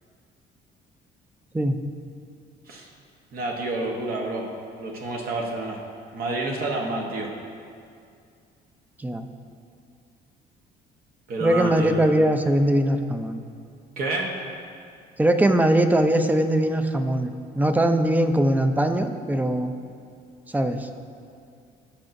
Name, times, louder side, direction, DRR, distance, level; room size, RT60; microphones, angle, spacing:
voice 1, 3.3-4.5 4.7-5.8 6.1-7.3 11.3-12.0 14.0-14.3, right 2 dB, 60° right, -1 dB, 1.1 m, -29 dB
voice 2, 11.4-13.4 15.2-19.7 20.5-20.9, right 1 dB, 10° right, 7 dB, 0.5 m, -21 dB
14.5 x 5.7 x 2.6 m, 2.3 s
cardioid pair, 110°, 17 cm